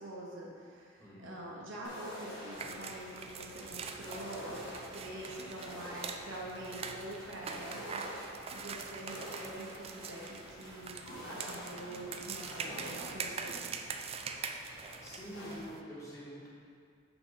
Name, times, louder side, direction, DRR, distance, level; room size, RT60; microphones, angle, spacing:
voice 1, 0.0-13.6, right 1 dB, 70° right, -4 dB, 1.2 m, -45 dB
voice 2, 1.0-1.3 15.0-16.5, equal, 15° left, -7 dB, 1.5 m, -46 dB
sound 1, 1.8-15.6, equal, 90° left, 1.7 m, -48 dB
sound 2, 2.5-15.8, right 5 dB, 30° right, 0.3 m, -44 dB
6.0 x 5.9 x 4.0 m, 2.2 s
head